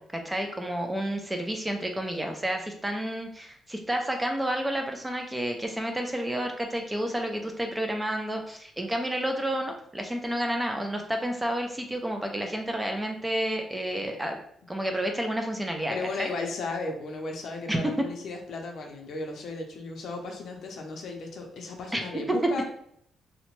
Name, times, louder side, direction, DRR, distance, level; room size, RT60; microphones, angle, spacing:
voice 1, 0.0-14.4 14.7-16.3 17.7-17.8 21.9-22.0 22.3-22.4, right 1 dB, 10° right, 3 dB, 0.3 m, -30 dB
voice 2, 15.9-22.6, left 3 dB, 60° left, 2 dB, 0.5 m, -35 dB
2.8 x 2.1 x 3.0 m, 0.69 s
cardioid pair, 145°, 0 cm